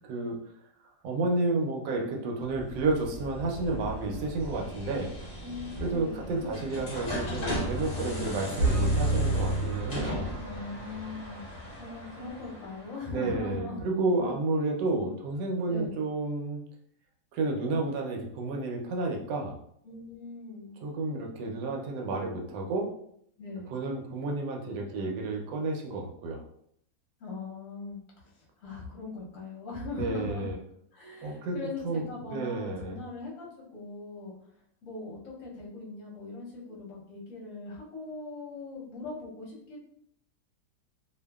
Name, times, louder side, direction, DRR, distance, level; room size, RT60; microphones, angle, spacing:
voice 1, 1.0-5.1 5.8-10.4 13.1-16.6 17.3-19.5 20.8-22.9 23.7-26.4 30.0-30.6 31.2-32.0 32.3-33.0, right 3 dB, 85° right, 1 dB, 1.2 m, -31 dB
sound 1, 2.4-13.2, equal, 75° left, 0.3 m, -38 dB
voice 2, 5.4-6.6 6.9-7.1 7.9-8.3 10.4-13.8 14.2-14.3 14.9-15.0 15.7-16.0 19.8-20.7 23.4-23.7 27.2-30.5 30.9-34.4 34.8-39.8, left 3 dB, 60° left, -4 dB, 0.9 m, -40 dB
sound 2, 8.6-10.7, right 2 dB, 65° right, 0.9 m, -27 dB
2.7 x 2.4 x 2.2 m, 0.68 s
omnidirectional pair, 1.8 m